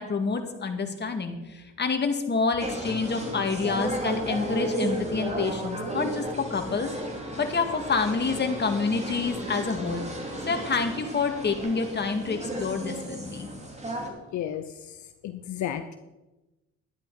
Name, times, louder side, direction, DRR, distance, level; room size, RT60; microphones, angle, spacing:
voice 1, 0.0-6.9 7.4-10.0 10.5-13.5, left 4 dB, 35° left, 5 dB, 2.0 m, -28 dB
sound 1, 2.6-14.1, right 1 dB, 20° right, 2.8 m, -34 dB
voice 2, 14.3-14.9 15.2-15.9, left 10 dB, 70° left, 8 dB, 0.8 m, -33 dB
11.5 x 10.5 x 4.9 m, 1.0 s
cardioid pair, 90°, 30 cm